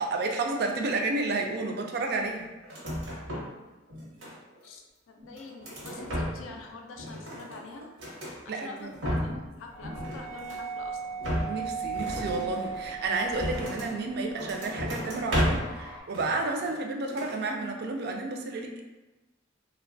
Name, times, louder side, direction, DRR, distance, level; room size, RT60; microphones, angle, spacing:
voice 1, 0.0-2.5 8.5-8.9 11.5-18.8, right 3 dB, 55° right, 2 dB, 0.3 m, -31 dB
sound 1, 2.6-3.6 3.9-4.7 5.2-6.6 6.9-8.4 8.8-9.5 9.8-10.7 11.2-14.0 14.4-15.8 16.1-16.8 17.1-17.4, equal, 85° right, 0.8 m, -33 dB
voice 2, 4.6-7.9 8.4-11.2, left 3 dB, 80° left, 2 dB, 0.3 m, -45 dB
sound 2, 9.7-16.0, right 5 dB, 15° left, 0.5 m, -38 dB
2.9 x 2.1 x 2.6 m, 1.1 s
head